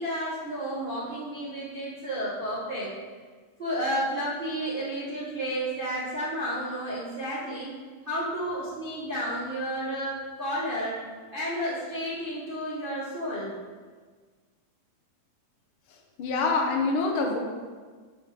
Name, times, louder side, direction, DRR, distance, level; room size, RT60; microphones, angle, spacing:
voice 1, 0.0-2.9 3.6-7.8 8.0-11.0 11.3-13.6, equal, 40° right, -9 dB, 0.7 m, -31 dB
voice 2, 16.2-17.4, left 3 dB, 60° left, 1 dB, 1.5 m, -25 dB
11.5 x 4.6 x 3.5 m, 1.5 s
omnidirectional pair, 3.4 m